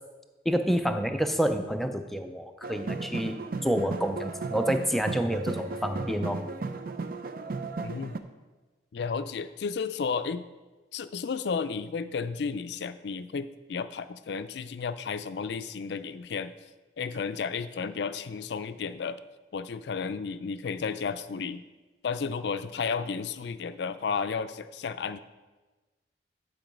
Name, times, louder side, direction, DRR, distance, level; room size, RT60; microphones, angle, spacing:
voice 1, 0.5-3.4 3.6-6.4, equal, ahead, 7 dB, 0.4 m, -28 dB
sound 1, 2.6-8.2, right 3 dB, 50° right, 0.5 m, -35 dB
voice 2, 7.8-8.1 8.9-10.4 10.9-16.5 17.0-19.2 19.5-21.6 22.0-25.2, left 5 dB, 70° left, 12 dB, 0.4 m, -33 dB
10.5 x 4.6 x 5.2 m, 1.2 s
head